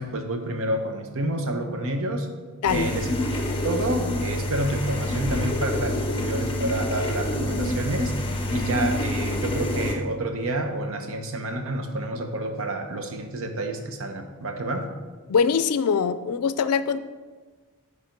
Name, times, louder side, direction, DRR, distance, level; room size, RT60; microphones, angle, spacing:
voice 1, 0.0-2.3 2.7-3.1 3.6-14.9, right 1 dB, 65° right, 5 dB, 0.9 m, -29 dB
sound 1, 2.6-9.9, left 1 dB, 25° left, 0.9 m, -27 dB
voice 2, 15.3-17.0, left 6 dB, 75° left, 13 dB, 0.4 m, -22 dB
8.8 x 3.5 x 5.2 m, 1.4 s
head